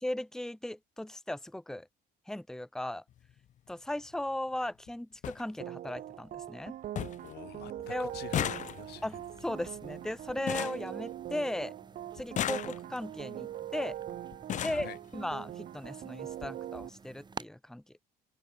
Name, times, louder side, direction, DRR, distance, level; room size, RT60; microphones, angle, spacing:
voice 1, 0.0-1.9 2.3-3.0 3.7-6.8 7.9-8.1 9.0-11.7 12.1-13.9 14.6-17.8, left 1 dB, 5° left, 1.4 m, -37 dB
sound 1, 3.1-3.3 4.5-4.6 4.9-5.0 5.2-5.4 5.9-6.4 6.6-6.7 7.0-7.3 7.6-11.6 12.2-13.1 13.9-14.0 14.3-14.9 15.9-16.0 16.3-16.5 16.8-16.9, left 11 dB, 45° left, 0.6 m, -37 dB
sound 2, 5.6-16.9, right 12 dB, 55° right, 0.6 m, -42 dB
voice 2, 7.2-9.1 14.6-15.0, left 15 dB, 75° left, 2.8 m, -46 dB
sound 3, 7.8-17.5, right 5 dB, 25° right, 2.1 m, -52 dB
cardioid pair, 110°, 17 cm